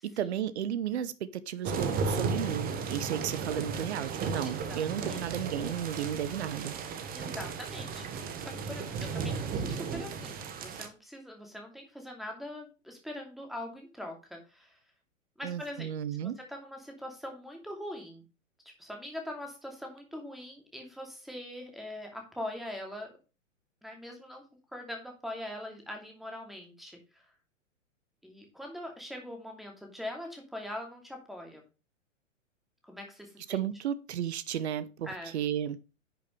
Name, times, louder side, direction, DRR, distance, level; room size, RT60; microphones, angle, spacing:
voice 1, 0.0-6.7 15.4-16.4 33.5-35.8, right 9 dB, 55° right, 0.9 m, -33 dB
sound 1, 1.6-10.9, right 5 dB, 20° right, 1.4 m, -35 dB
voice 2, 4.4-4.8 5.1-5.2 7.1-14.8 15.4-15.9 16.2-18.2 18.8-23.1 23.8-24.4 24.7-27.3 28.2-31.6 32.8-33.6 35.0-35.3, left 1 dB, ahead, 2.7 m, -42 dB
11.0 x 6.7 x 3.3 m
figure-of-eight pair, 110°, 39 cm